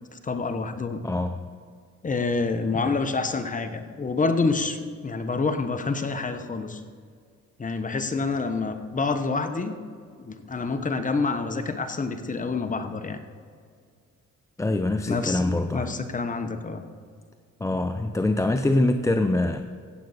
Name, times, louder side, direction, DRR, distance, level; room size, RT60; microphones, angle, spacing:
voice 1, 0.1-1.0 2.0-6.8 7.6-9.8 10.2-13.2 15.1-15.4 15.7-16.8, left 4 dB, 25° left, 8 dB, 1.0 m, -27 dB
voice 2, 1.0-1.5 2.9-3.0 14.6-16.0 17.6-19.6, left 2 dB, 10° left, 7 dB, 0.4 m, -24 dB
15.5 x 7.7 x 4.2 m, 2.1 s
cardioid pair, 90°, 30 cm